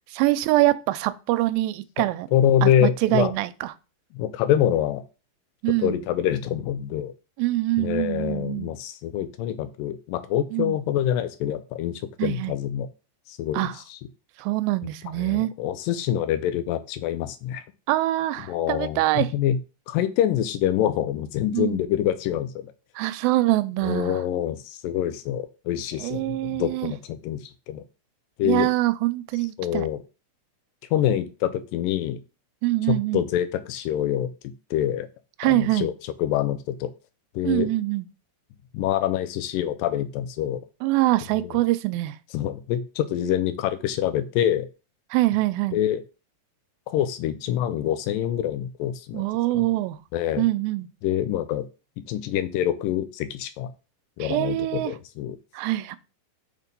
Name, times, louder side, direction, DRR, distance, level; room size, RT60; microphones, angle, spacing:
voice 1, 0.1-2.3 2.6-3.7 5.6-6.0 7.4-8.7 10.5-10.8 12.2-12.6 13.5-13.8 14.4-15.5 17.9-19.3 21.5-21.8 23.0-24.2 26.0-26.9 28.4-29.9 32.6-33.2 35.4-35.9 37.4-38.1 40.8-42.2 45.1-45.8 49.1-50.0 50.4-50.9 54.2-54.9 55.5-56.0, right 17 dB, 85° right, 2.3 m, -24 dB
voice 2, 2.3-3.3 4.1-5.0 5.8-7.1 7.8-12.9 13.3-14.0 15.2-17.6 18.5-19.6 19.9-22.7 23.8-27.4 27.7-27.8 28.4-28.7 29.6-30.0 30.9-32.2 32.9-34.3 34.7-35.1 35.4-35.9 36.2-36.9 37.4-37.7 38.7-40.6 41.4-41.5 42.3-44.7 45.7-46.0 46.9-49.2 49.5-49.6 50.1-50.5 51.0-51.7 52.1-53.7 54.2-55.4, left 11 dB, 80° left, 2.2 m, -25 dB
6.3 x 3.7 x 5.2 m
omnidirectional pair, 4.1 m